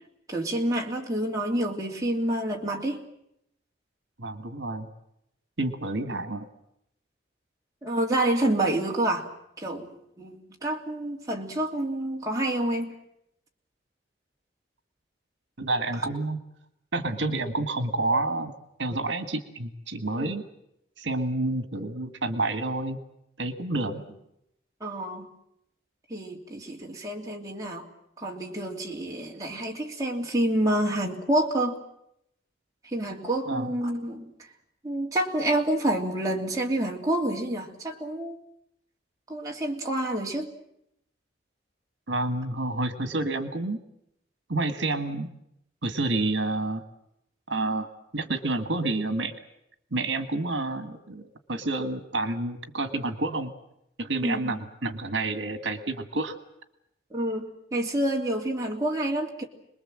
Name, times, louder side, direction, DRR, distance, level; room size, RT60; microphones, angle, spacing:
voice 1, 0.3-3.0 7.8-9.3 9.6-12.9 20.2-20.3 24.8-25.3 26.1-27.9 28.2-31.8 32.8-34.3 34.8-38.4 39.3-40.5 54.2-54.6 57.1-59.4, right 1 dB, 20° right, -2 dB, 2.9 m, -28 dB
voice 2, 4.2-4.9 5.6-6.4 15.6-16.4 16.9-18.5 18.8-20.4 21.0-23.0 23.4-24.0 33.5-33.7 42.1-43.8 44.5-45.3 45.8-46.8 47.5-47.9 48.1-49.3 49.9-51.2 51.5-53.5 54.0-56.4, right 2 dB, 80° right, 9 dB, 1.7 m, -29 dB
27.0 x 21.0 x 7.6 m, 0.78 s
head